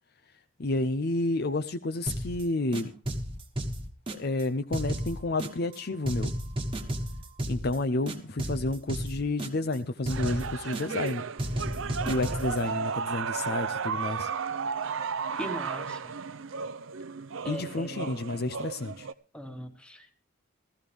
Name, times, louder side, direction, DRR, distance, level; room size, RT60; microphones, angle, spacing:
voice 1, 0.6-2.9 4.1-6.3 7.5-11.2 11.9-14.3 17.4-19.1, left 2 dB, 45° left, 9 dB, 0.6 m, -30 dB
sound 1, 2.1-2.4 2.7-4.4 4.7-5.8 6.1-7.8 8.1-9.8 10.1-11.1 11.4-12.6, right 1 dB, 25° right, 1.3 m, -33 dB
sound 2, 10.1-19.1, right 6 dB, 65° right, 0.6 m, -34 dB
voice 2, 15.4-16.1 17.4-18.1 19.3-20.1, equal, 5° left, 5 dB, 1.6 m, -39 dB
16.0 x 14.0 x 3.5 m, 0.33 s
head